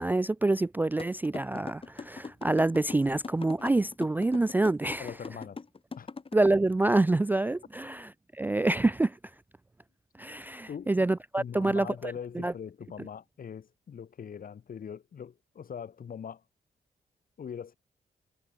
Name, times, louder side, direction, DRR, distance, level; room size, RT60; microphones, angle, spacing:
voice 1, 0.0-5.1 6.3-8.1 8.4-9.2 10.2-11.9 12.4-12.5, right 2 dB, 10° right, 0.3 m, -26 dB
sound 1, 1.0-6.3, left 4 dB, 35° left, 4.6 m, -40 dB
voice 2, 5.0-5.6 6.0-6.1 10.7-10.9 11.4-16.4 17.4-17.7, left 7 dB, 60° left, 7.8 m, -41 dB
cardioid pair, 90°, 16 cm